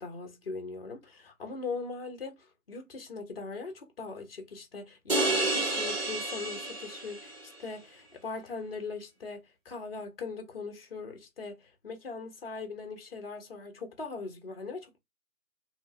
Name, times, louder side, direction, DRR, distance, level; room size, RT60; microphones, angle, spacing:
voice 1, 0.0-15.0, left 4 dB, 45° left, 0.9 m, -40 dB
sound 1, 5.1-7.4, right 2 dB, 45° right, 1.1 m, -30 dB
2.8 x 2.4 x 3.0 m
figure-of-eight pair, 155°, 43 cm